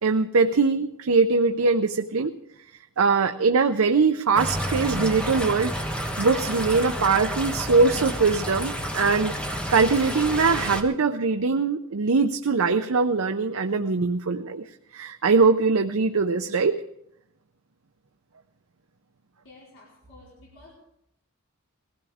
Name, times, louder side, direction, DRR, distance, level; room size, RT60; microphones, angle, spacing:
voice 1, 0.0-2.3 3.0-5.7 6.2-14.6 14.9-16.8, right 4 dB, 75° right, 6 dB, 0.7 m, -22 dB
sound 1, 4.4-10.8, equal, 5° left, 1.4 m, -30 dB
voice 2, 19.4-20.7, left 2 dB, 65° left, -5 dB, 4.7 m, -50 dB
21.0 x 16.0 x 3.6 m, 0.77 s
head